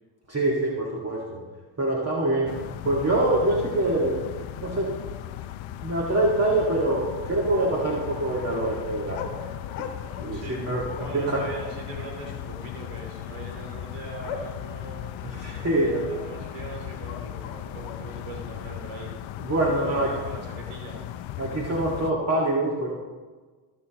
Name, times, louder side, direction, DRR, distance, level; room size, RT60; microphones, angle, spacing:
voice 1, 0.3-1.4 1.8-2.6 2.8-4.2 4.6-5.0 5.8-9.3 9.8-9.9 10.2-11.5 15.2-16.0 19.4-20.1 21.4-22.9, right 2 dB, 30° right, -3 dB, 1.9 m, -25 dB
sound 1, 2.5-22.1, left 13 dB, 65° left, 0.7 m, -37 dB
sound 2, 8.2-22.0, left 6 dB, 85° left, 1.2 m, -44 dB
voice 2, 10.3-10.7 10.9-15.0 15.7-19.1 19.7-21.0, right 3 dB, 85° right, -1 dB, 3.1 m, -40 dB
16.5 x 6.3 x 3.0 m, 1.4 s
supercardioid pair, 65°, 50 cm